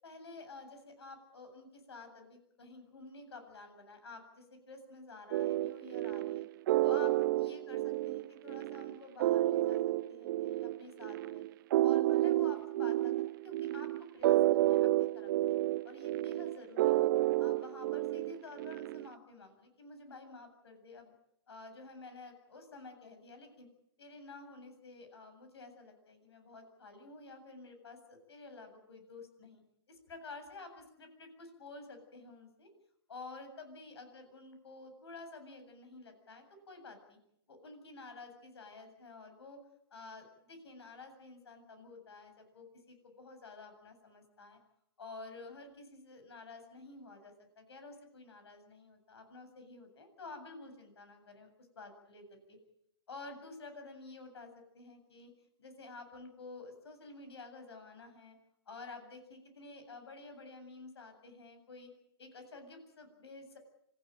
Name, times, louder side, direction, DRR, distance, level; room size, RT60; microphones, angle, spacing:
voice 1, 0.0-6.5 6.8-11.4 11.8-15.6 15.8-17.1 17.4-21.1 21.5-23.7 24.0-29.6 29.9-32.7 33.1-37.2 37.5-39.6 39.9-44.6 45.0-51.5 51.8-52.2 53.1-55.3 55.6-58.4 58.7-61.9 62.2-63.6, left 3 dB, 75° left, 7 dB, 7.9 m, -51 dB
sound 1, 5.3-19.1, right 15 dB, 50° right, 0.9 m, -30 dB
26.5 x 15.5 x 9.0 m, 0.75 s
hypercardioid pair, 125°, 14 cm